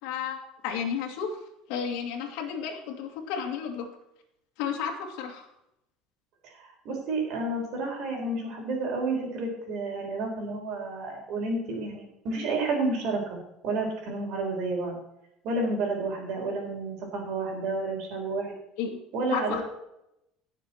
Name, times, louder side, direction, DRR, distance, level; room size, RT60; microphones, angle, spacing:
voice 1, 0.0-1.4 1.7-3.9 4.6-5.5 18.8-19.0 19.3-19.6, left 7 dB, 65° left, 0 dB, 2.2 m, -32 dB
voice 2, 6.4-13.4 13.6-15.0 15.4-18.6 19.1-19.6, right 3 dB, 45° right, 0 dB, 4.1 m, -30 dB
17.0 x 6.7 x 4.4 m, 0.82 s
cardioid pair, 180°, 0 cm